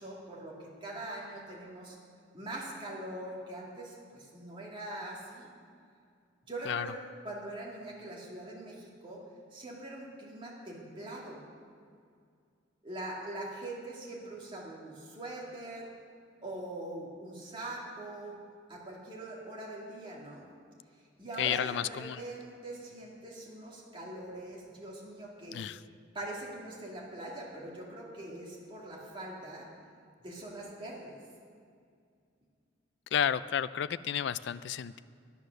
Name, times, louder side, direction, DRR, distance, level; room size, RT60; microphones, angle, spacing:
voice 1, 0.0-2.0 2.3-5.5 6.5-7.0 7.2-9.2 9.5-11.4 12.8-15.9 16.4-18.4 18.7-20.4 21.2-25.6 26.1-29.7 30.2-31.2, right 1 dB, 25° right, -4 dB, 2.5 m, -42 dB
voice 2, 21.4-22.2 25.5-25.8 33.1-35.0, left 8 dB, 60° left, 15 dB, 0.3 m, -31 dB
11.0 x 9.3 x 6.5 m, 2.2 s
head